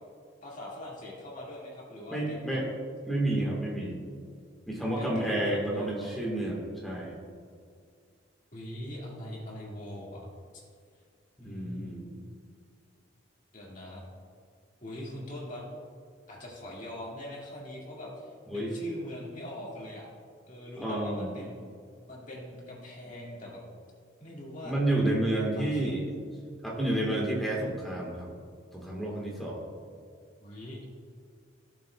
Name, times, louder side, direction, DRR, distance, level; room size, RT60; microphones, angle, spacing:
voice 1, 0.4-2.6 4.8-6.1 8.5-10.3 10.5-10.6 11.4-12.0 13.5-14.1 14.8-15.6 16.3-20.1 20.5-21.6 22.1-23.6 24.2-24.8 25.6-26.0 30.4-30.8, left 1 dB, 40° left, -5 dB, 2.0 m, -42 dB
voice 2, 2.1-2.7 3.1-4.0 4.7-7.2 11.4-12.1 18.5-18.7 20.8-21.3 24.6-26.0 26.6-28.3 28.7-29.6, right 1 dB, ahead, -3 dB, 1.4 m, -30 dB
13.5 x 7.1 x 2.3 m, 2.1 s
head